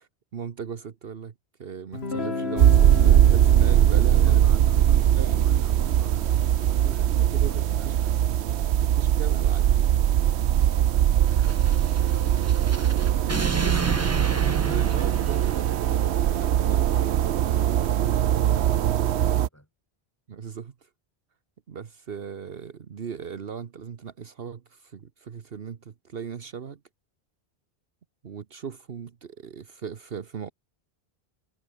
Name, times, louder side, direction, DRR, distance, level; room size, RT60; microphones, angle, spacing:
voice 1, 0.0-1.3 1.6-4.4 5.1-5.5 6.6-8.0 8.8-10.0 13.4-14.1 14.4-15.7 16.3-16.9 20.3-20.9 21.7-26.8 28.2-30.5, right 7 dB, 65° right, 1.2 m, -38 dB
Guitar, 1.9-7.7, left 3 dB, 75° left, 3.1 m, -35 dB
sound 1, 2.6-19.5, right 11 dB, 90° right, 1.0 m, -21 dB
voice 2, 4.1-8.6 10.5-13.6 15.2-15.8 16.1-19.7, equal, 15° left, 6.3 m, -50 dB
sound 2, 11.3-16.1, right 3 dB, 20° right, 0.5 m, -32 dB
omnidirectional pair, 1.1 m